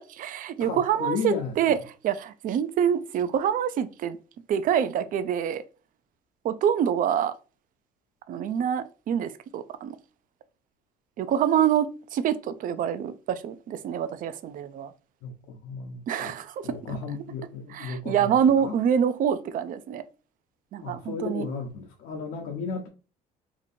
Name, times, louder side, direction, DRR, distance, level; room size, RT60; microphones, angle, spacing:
voice 1, 0.1-1.8 2.0-4.2 4.5-5.6 6.4-7.3 8.3-10.0 11.2-14.9 16.1-17.2 17.7-20.0 20.7-21.5, right 9 dB, 55° right, 0.4 m, -26 dB
voice 2, 0.6-1.8 15.2-16.3 16.6-18.7 20.8-22.9, left 5 dB, 85° left, 0.8 m, -34 dB
3.0 x 2.7 x 4.1 m
cardioid pair, 110°, 17 cm